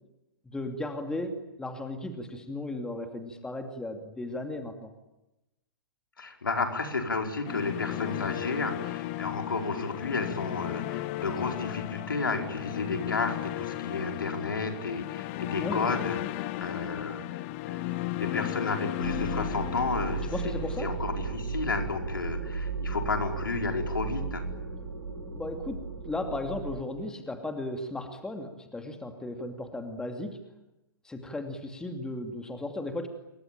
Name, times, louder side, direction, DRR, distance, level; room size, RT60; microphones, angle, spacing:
voice 1, 0.4-4.9 15.6-15.8 20.2-20.9 25.3-30.4 31.0-33.1, left 2 dB, 5° left, 5 dB, 2.7 m, -36 dB
voice 2, 6.2-20.5 20.8-24.5, left 3 dB, 70° left, 3 dB, 4.9 m, -32 dB
sound 1, 7.4-21.6, left 16 dB, 35° left, 1.4 m, -35 dB
sound 2, 19.0-26.8, right 4 dB, 80° right, 7.8 m, -35 dB
27.5 x 23.5 x 8.9 m, 0.94 s
figure-of-eight pair, 110°, 12 cm